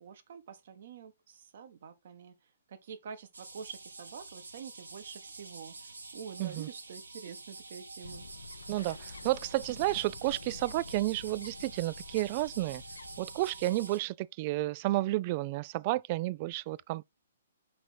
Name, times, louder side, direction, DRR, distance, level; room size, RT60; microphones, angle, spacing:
voice 1, 0.0-2.3 2.9-5.7 6.1-8.2, right 7 dB, 50° right, 1.3 m, -46 dB
sound 1, 3.3-14.0, right 3 dB, 75° right, 1.4 m, -48 dB
voice 2, 6.4-6.7 8.7-12.8 13.2-17.0, right 18 dB, 35° right, 0.3 m, -31 dB
Bird, 8.0-14.0, left 4 dB, 65° left, 0.6 m, -49 dB
5.9 x 5.1 x 4.3 m
figure-of-eight pair, 125°, 0 cm